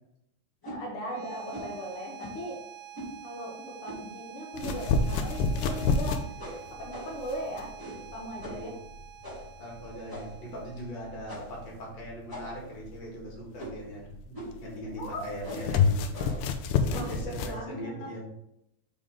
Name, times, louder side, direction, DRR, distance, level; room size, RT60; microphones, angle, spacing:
voice 1, 0.6-2.6 3.2-6.3 6.8-7.7 8.1-8.8 15.0-15.2 16.9-18.1, equal, 75° left, -2 dB, 1.2 m, -38 dB
sound 1, 0.6-0.8 1.5-1.7 2.2-2.5 2.9-3.1 3.8-4.1 4.6-4.8 5.1-5.2 5.6-6.0 6.4-7.3 7.8-8.1 8.4-8.6 9.2-9.5 10.1-10.5 11.3-11.6 12.3-12.7 13.5-13.9 14.3-14.6 15.4-15.7 16.1-16.5 16.9-17.2, equal, 10° left, 1.2 m, -42 dB
sound 2, 0.9-11.9, right 10 dB, 80° right, 2.0 m, -48 dB
sound 3, 4.5-17.6, left 4 dB, 90° left, 2.7 m, -30 dB
voice 2, 9.6-16.1 16.9-18.3, equal, 50° left, -2 dB, 2.4 m, -40 dB
7.3 x 4.9 x 3.6 m, 0.80 s
omnidirectional pair, 4.6 m